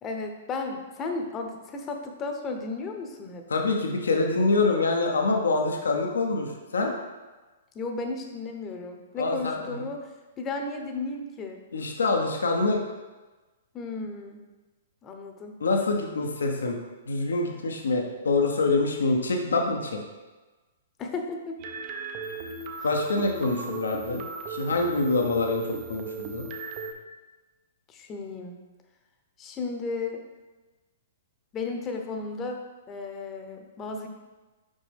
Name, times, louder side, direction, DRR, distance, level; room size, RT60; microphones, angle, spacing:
voice 1, 0.0-3.4 7.7-11.6 13.7-14.4 15.0-15.6 21.0-21.6 27.9-28.6 29.4-30.2 31.5-34.1, left 3 dB, 25° left, 4 dB, 0.8 m, -34 dB
voice 2, 3.5-6.9 9.2-9.9 11.7-12.8 15.6-16.8 17.1-20.0 22.8-24.2 24.5-26.5, left 3 dB, 75° left, 2 dB, 0.8 m, -25 dB
sound 1, 21.6-26.9, right 4 dB, 40° right, 0.7 m, -37 dB
5.3 x 5.1 x 3.5 m, 1.2 s
figure-of-eight pair, 115°, 0 cm